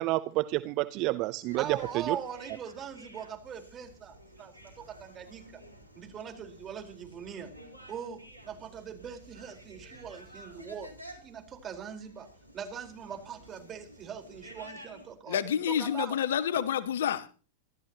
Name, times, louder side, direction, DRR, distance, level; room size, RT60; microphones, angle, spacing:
voice 1, 0.0-2.2, right 19 dB, 40° right, 0.7 m, -29 dB
sound 1, 1.5-15.1, right 1 dB, 90° right, 3.7 m, -52 dB
voice 2, 1.6-5.6 5.9-7.5 7.9-12.3 12.5-15.4 15.7-16.2, right 7 dB, 25° right, 4.4 m, -41 dB
voice 3, 15.3-17.3, left 9 dB, 60° left, 1.2 m, -29 dB
27.5 x 13.0 x 3.0 m
figure-of-eight pair, 90°, 0 cm